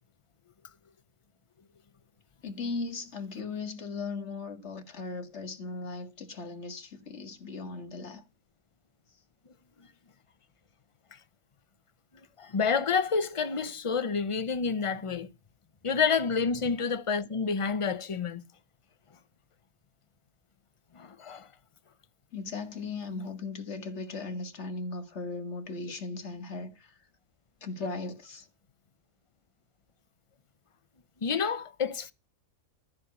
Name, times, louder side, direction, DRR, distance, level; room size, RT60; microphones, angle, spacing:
voice 1, 2.4-8.2 22.3-26.9 27.6-28.5, left 3 dB, 50° left, 2.1 m, -37 dB
voice 2, 12.4-15.3 15.8-18.4 20.9-21.5 31.2-32.1, left 5 dB, 35° left, 0.6 m, -29 dB
13.5 x 4.8 x 8.2 m
omnidirectional pair, 1.5 m